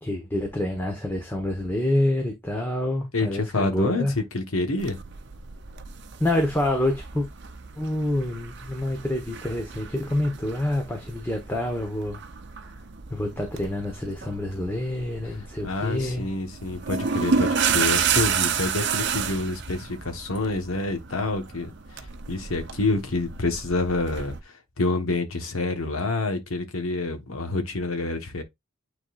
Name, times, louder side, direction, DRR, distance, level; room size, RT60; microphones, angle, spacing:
voice 1, 0.0-4.1 6.2-7.3 7.8-12.2 13.1-16.3, left 1 dB, 10° left, 1.2 m, -27 dB
voice 2, 3.1-5.0 15.6-21.7 22.3-28.4, left 2 dB, 80° left, 1.4 m, -27 dB
sound 1, 4.8-24.4, right 6 dB, 55° right, 0.7 m, -31 dB
9.5 x 4.1 x 2.5 m
head